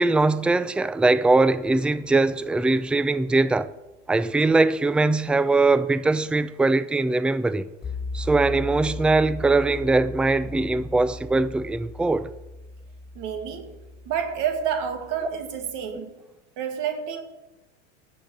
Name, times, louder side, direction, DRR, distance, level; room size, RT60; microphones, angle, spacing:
voice 1, 0.0-3.7 4.1-7.7 8.1-12.3 15.9-16.0, right 3 dB, 5° right, 0.5 m, -21 dB
sound 1, 7.8-15.9, left 2 dB, 15° left, 4.4 m, -37 dB
voice 2, 13.2-13.8 14.1-16.2 16.6-17.2, right 8 dB, 60° right, 2.1 m, -29 dB
10.5 x 7.7 x 8.8 m
hypercardioid pair, 85°, 35 cm